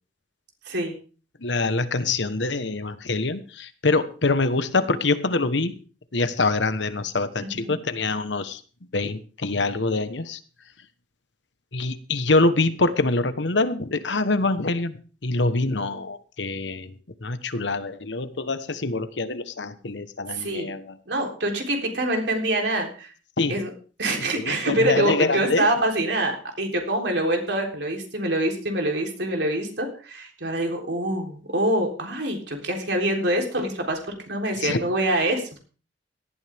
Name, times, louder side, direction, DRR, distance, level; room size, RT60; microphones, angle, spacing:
voice 1, 1.4-5.8 6.1-8.6 8.9-10.4 11.7-16.9 17.2-21.0 23.4-23.6 24.1-25.7 34.6-34.8, left 3 dB, 75° left, 11 dB, 1.2 m, -25 dB
voice 2, 7.4-7.7 20.3-20.7 21.1-23.1 23.5-23.7 24.0-26.3 26.6-34.0 34.3-35.6, right 1 dB, 70° right, 2 dB, 3.7 m, -25 dB
18.0 x 12.5 x 3.6 m, 0.38 s
head